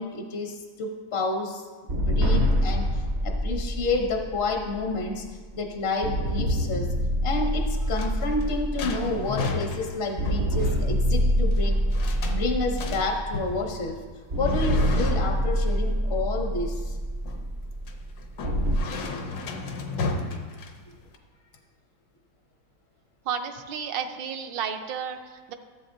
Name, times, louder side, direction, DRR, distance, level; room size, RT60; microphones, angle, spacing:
voice 1, 0.0-1.6 1.9-5.2 5.5-6.9 7.2-11.8 12.3-14.0 14.4-17.0 20.9-21.0, left 3 dB, 50° left, 2 dB, 0.7 m, -29 dB
sound 1, 1.9-5.5 6.0-9.8 10.2-13.8 14.3-18.8, equal, 55° right, 0.7 m, -26 dB
sound 2, 7.5-21.2, left 3 dB, 75° left, 1.5 m, -35 dB
voice 2, 23.2-25.5, right 7 dB, 75° right, 6 dB, 1.3 m, -32 dB
14.5 x 7.4 x 2.6 m, 1.5 s
omnidirectional pair, 2.1 m